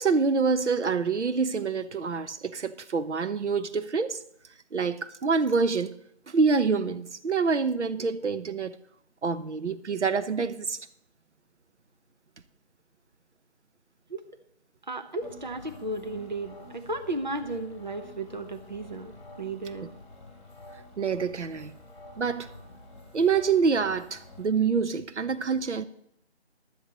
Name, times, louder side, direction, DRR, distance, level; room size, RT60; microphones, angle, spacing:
voice 1, 0.0-4.2 4.7-5.9 6.3-8.7 9.2-10.8 21.0-21.7 22.2-22.5 23.1-25.8, right 5 dB, 85° right, 0.9 m, -26 dB
voice 2, 14.9-19.9, right 2 dB, 40° right, 0.8 m, -34 dB
sound 1, 15.2-24.5, left 2 dB, 30° left, 3.2 m, -49 dB
15.5 x 11.5 x 3.0 m
figure-of-eight pair, 180°, 34 cm